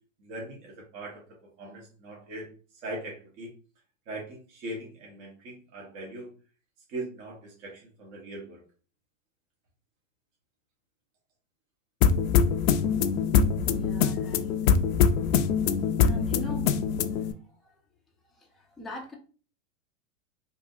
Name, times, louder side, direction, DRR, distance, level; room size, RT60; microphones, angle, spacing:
voice 1, 0.2-1.2 1.6-2.5 2.8-3.5 4.1-6.3 6.9-8.6, right 1 dB, 45° right, -2 dB, 1.2 m, -40 dB
sound 1, 12.0-17.3, left 7 dB, 80° left, 0.5 m, -24 dB
voice 2, 13.7-14.5 16.0-16.7 17.1-17.2 18.8-19.2, left 1 dB, ahead, -2 dB, 0.4 m, -40 dB
3.6 x 2.7 x 2.4 m, 0.38 s
hypercardioid pair, 120°, 39 cm